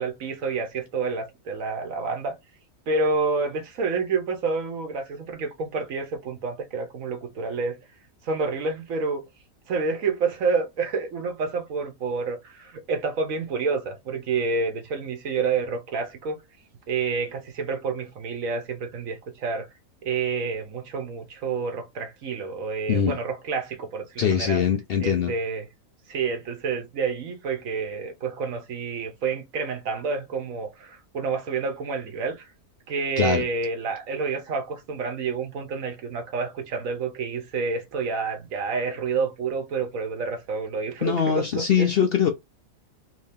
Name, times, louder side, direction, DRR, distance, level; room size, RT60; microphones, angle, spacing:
voice 1, 0.0-2.3 2.9-7.8 8.2-9.2 9.7-16.4 16.9-19.7 20.0-24.6 25.0-25.7 26.1-32.5 32.9-41.9, right 4 dB, 65° right, 1.2 m, -28 dB
voice 2, 24.2-25.3 33.2-33.4 41.0-42.3, left 8 dB, 70° left, 0.5 m, -22 dB
3.2 x 2.7 x 3.5 m
omnidirectional pair, 1.5 m